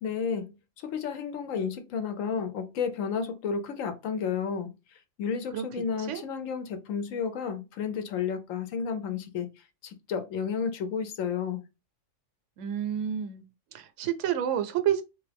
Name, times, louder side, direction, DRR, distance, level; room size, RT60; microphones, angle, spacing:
voice 1, 0.0-4.7 5.2-9.5 9.8-11.6, left 6 dB, 80° left, 1.1 m, -32 dB
voice 2, 12.6-13.5 13.7-15.0, right 10 dB, 70° right, 0.9 m, -29 dB
3.6 x 2.6 x 3.3 m
omnidirectional pair, 1.3 m